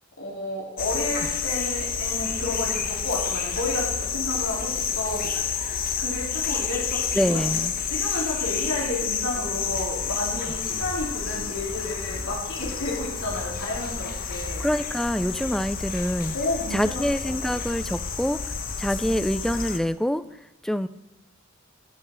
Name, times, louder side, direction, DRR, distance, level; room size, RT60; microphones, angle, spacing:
voice 1, 0.2-5.2 6.0-7.4 7.8-14.6 16.2-17.7, left 1 dB, 80° left, -5 dB, 3.9 m, -31 dB
sound 1, 0.8-19.8, left 6 dB, 45° left, 1.1 m, -29 dB
voice 2, 7.1-7.7 14.6-16.3 16.7-18.4 18.8-20.2 20.6-20.9, equal, ahead, 13 dB, 0.4 m, -25 dB
13.5 x 6.2 x 7.6 m, 1.0 s
head